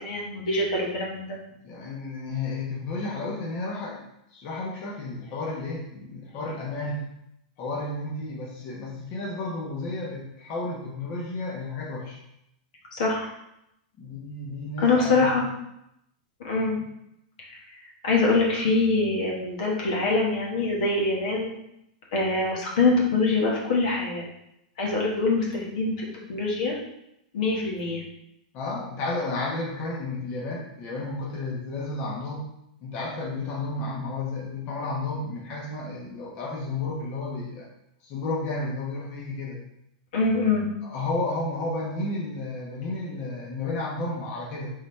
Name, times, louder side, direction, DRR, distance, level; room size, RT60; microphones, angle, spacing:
voice 1, 0.0-1.4 12.9-13.3 14.8-15.5 16.4-16.8 17.5-17.6 18.0-21.5 22.1-24.3 24.8-26.8 27.3-28.0 40.1-40.7, left 3 dB, 70° left, -3 dB, 1.4 m, -24 dB
voice 2, 1.6-4.0 4.3-7.0 7.6-12.2 14.0-15.4 28.5-32.4 32.8-37.7 38.0-39.6 40.8-44.7, left 2 dB, 45° left, -4 dB, 1.2 m, -32 dB
4.0 x 3.9 x 3.2 m, 0.81 s
hypercardioid pair, 130°, 4 cm